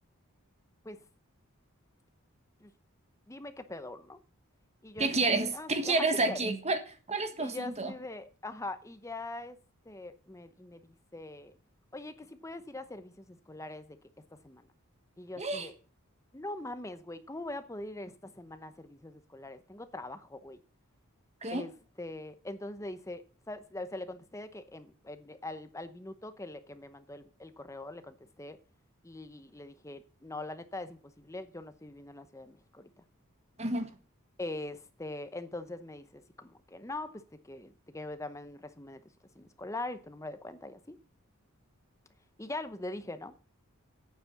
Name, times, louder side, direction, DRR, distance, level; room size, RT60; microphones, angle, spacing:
voice 1, 3.3-4.2 4.8-6.4 7.4-9.6 9.9-11.5 11.9-14.0 14.4-14.7 15.2-15.7 16.3-20.6 21.5-21.7 22.0-28.6 29.0-32.9 34.4-39.0 39.4-41.0 42.4-43.3, left 2 dB, 15° left, 0.8 m, -42 dB
voice 2, 5.0-6.8 7.1-7.9 15.4-15.7 21.4-21.7 33.6-33.9, right 3 dB, 30° right, 1.4 m, -29 dB
9.2 x 7.3 x 7.1 m
head